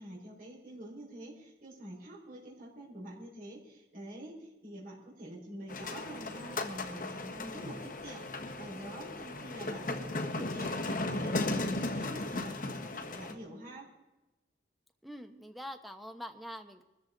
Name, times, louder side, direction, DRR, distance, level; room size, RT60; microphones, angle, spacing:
voice 1, 0.0-13.9, right 1 dB, 50° right, -4 dB, 5.3 m, -46 dB
sound 1, 5.7-13.3, left 2 dB, 45° left, 1.4 m, -36 dB
voice 2, 15.0-16.8, equal, ahead, 6 dB, 1.0 m, -44 dB
22.5 x 13.5 x 3.9 m, 1.0 s
head